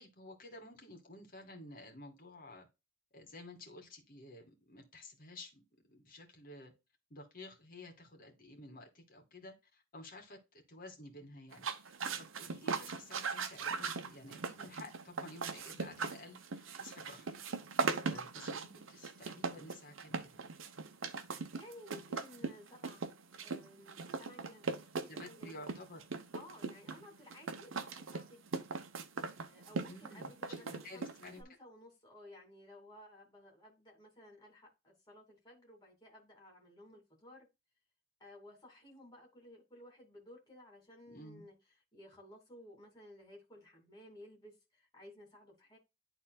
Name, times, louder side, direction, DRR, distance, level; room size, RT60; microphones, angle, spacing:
voice 1, 0.0-2.7 3.1-5.6 5.9-6.7 7.1-17.3 18.0-20.4 25.1-26.0 29.9-31.4 41.1-41.5, left 2 dB, 45° left, 2.2 m, -52 dB
sound 1, 11.5-31.4, right 4 dB, 75° right, 0.9 m, -40 dB
voice 2, 21.5-23.0 23.4-25.6 26.3-28.6 29.5-31.1 31.4-37.5 38.2-41.5 41.9-45.8, left 1 dB, 20° left, 2.6 m, -56 dB
11.5 x 3.9 x 2.3 m
head